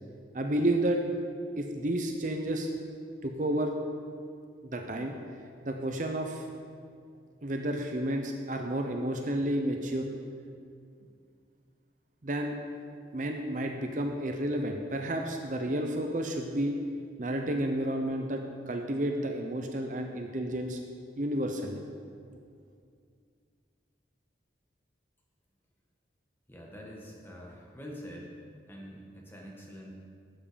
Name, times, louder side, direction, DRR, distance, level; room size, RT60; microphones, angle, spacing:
voice 1, 0.3-1.0 1.6-2.7 3.2-3.7 4.6-5.1 5.6-6.5 7.4-10.1 12.2-12.6 13.1-16.8 17.2-20.8 21.2-21.8, right 1 dB, 45° right, 3 dB, 0.7 m, -31 dB
voice 2, 26.5-28.3 28.7-29.9, equal, 10° left, -2 dB, 1.4 m, -45 dB
12.0 x 7.5 x 5.1 m, 2.3 s
head